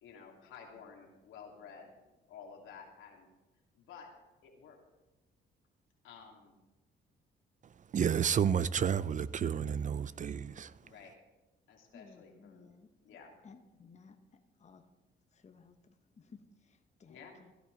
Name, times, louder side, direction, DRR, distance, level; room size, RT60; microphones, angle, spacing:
voice 1, 0.0-3.3 3.7-4.1 4.4-4.8 6.0-6.6 10.8-11.1 11.7-12.7 12.9-13.3 17.1-17.4, left 6 dB, 85° left, 2.9 m, -53 dB
voice 2, 7.9-10.7, right 8 dB, 40° right, 0.5 m, -31 dB
voice 3, 11.9-12.9 13.4-14.2 14.6-14.9 15.3-17.5, left 5 dB, 35° left, 1.1 m, -58 dB
16.5 x 11.5 x 4.0 m
cardioid pair, 90°, 20 cm